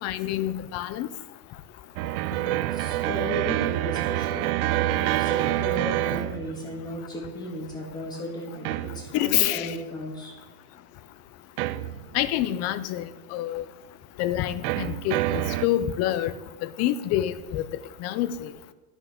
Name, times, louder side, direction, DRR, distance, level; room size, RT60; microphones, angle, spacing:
voice 1, 0.0-1.1 9.1-9.8 12.1-13.7 14.2-16.3 16.6-17.6 18.0-18.5, left 13 dB, 35° left, 15 dB, 0.4 m, -27 dB
sound 1, 2.0-7.0 8.6-9.4 11.6-12.4 14.6-15.7, right 16 dB, 80° right, 0.5 m, -27 dB
voice 2, 2.4-10.3, left 1 dB, 10° left, -1 dB, 1.9 m, -35 dB
10.5 x 6.1 x 5.0 m, 1.2 s
supercardioid pair, 150°, 43 cm